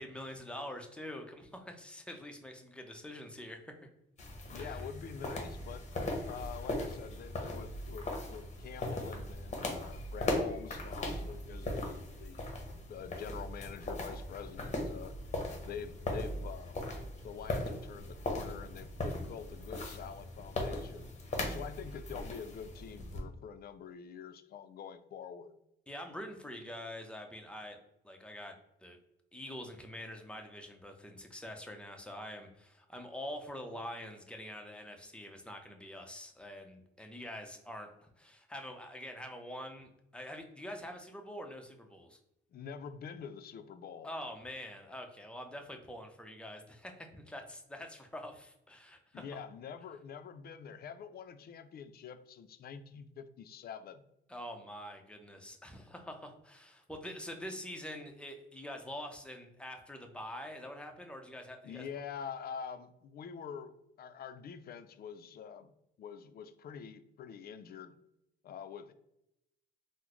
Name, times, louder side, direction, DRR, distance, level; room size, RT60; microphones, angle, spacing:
voice 1, 0.0-3.9 4.6-4.8 25.9-27.8 28.0-29.0 29.3-42.2 44.0-49.2 54.3-61.8, left 1 dB, 5° left, 3 dB, 0.6 m, -45 dB
sound 1, 4.2-23.2, left 1 dB, 35° left, 0.9 m, -39 dB
voice 2, 4.5-5.9 6.2-12.4 12.9-15.1 15.6-16.7 17.2-21.1 21.5-25.5 42.5-44.1 49.1-54.0 61.6-65.7 66.0-68.0 68.4-68.9, left 7 dB, 50° left, 11 dB, 0.4 m, -46 dB
3.6 x 2.0 x 3.0 m, 0.83 s
cardioid pair, 90°, 20 cm